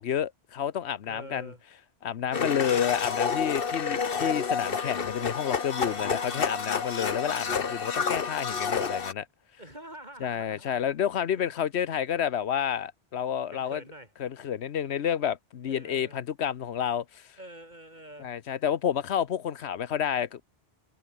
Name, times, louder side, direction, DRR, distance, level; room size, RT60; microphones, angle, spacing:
voice 1, 0.0-1.5 2.0-9.3 10.2-13.8 14.2-17.4 18.2-20.4, left 9 dB, 85° left, 1.2 m, -30 dB
voice 2, 1.1-1.6 5.8-6.6 9.6-11.0 13.5-14.1 15.6-16.2 17.4-18.3, right 1 dB, 45° right, 8.3 m, -46 dB
Domestic sounds home sounds, 2.3-9.1, left 5 dB, 60° left, 1.5 m, -29 dB
omnidirectional pair, 1.1 m